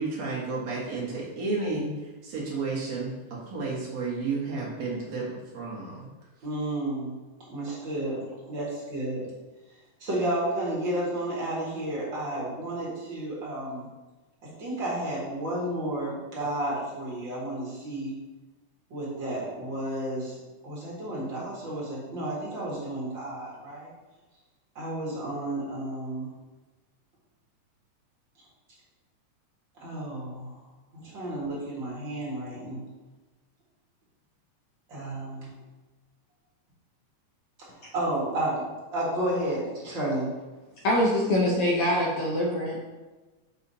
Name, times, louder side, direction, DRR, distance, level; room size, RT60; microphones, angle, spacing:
voice 1, 0.0-6.1, right 3 dB, 65° right, -5 dB, 2.7 m, -32 dB
voice 2, 6.4-7.1 7.5-9.2 10.0-13.9 14.6-18.1 18.9-20.4 20.6-23.9 24.8-26.3 29.8-30.6 30.9-32.8 34.9-35.5 37.9-38.6 38.9-40.3, right 1 dB, 40° right, -6 dB, 2.4 m, -32 dB
voice 3, 40.8-42.8, left 1 dB, 65° left, -3 dB, 1.5 m, -24 dB
6.8 x 6.7 x 2.8 m, 1.2 s
omnidirectional pair, 3.3 m